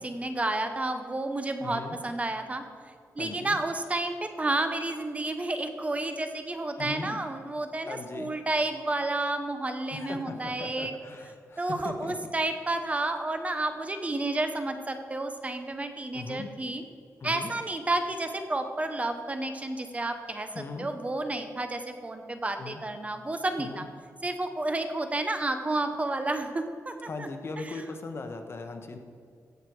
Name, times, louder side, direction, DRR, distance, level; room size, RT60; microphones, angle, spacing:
voice 1, 0.0-2.6 3.2-10.9 11.6-16.8 17.2-23.9 24.2-27.3 27.6-27.8, right 2 dB, 25° right, 7 dB, 0.8 m, -31 dB
voice 2, 1.6-2.0 3.2-3.6 6.8-7.2 7.8-8.4 9.9-12.1 16.1-16.5 17.2-17.5 20.5-20.9 22.6-22.8 23.6-23.8 27.1-29.0, left 3 dB, 45° left, 6 dB, 1.1 m, -39 dB
16.5 x 6.5 x 4.7 m, 2.1 s
wide cardioid pair, 120°, 6 cm